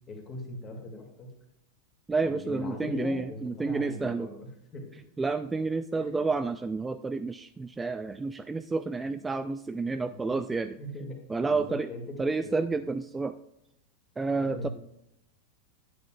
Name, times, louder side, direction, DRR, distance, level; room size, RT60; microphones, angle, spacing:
voice 1, 0.1-1.3 2.2-4.9 5.9-6.3 9.0-9.1 9.9-10.4 10.8-12.6 14.4-14.7, left 2 dB, 25° left, 1 dB, 2.3 m, -41 dB
voice 2, 2.1-4.3 5.2-10.8 11.3-11.9 12.2-13.3 14.2-14.7, right 3 dB, 10° right, 10 dB, 0.3 m, -30 dB
12.0 x 8.7 x 2.4 m, 0.80 s
figure-of-eight pair, 90°, 0 cm